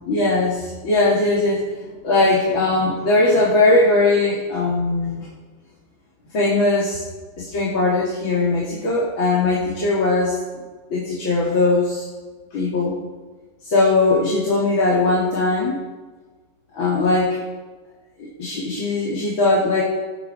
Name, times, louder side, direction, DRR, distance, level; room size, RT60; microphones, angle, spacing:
voice 1, 0.1-5.3 6.3-7.0 7.4-10.6 10.9-12.1 12.5-13.0 13.6-15.8 16.7-17.4 18.2-19.8, left 2 dB, 80° left, -5 dB, 3.8 m, -20 dB
26.5 x 9.4 x 4.5 m, 1.3 s
omnidirectional pair, 2.1 m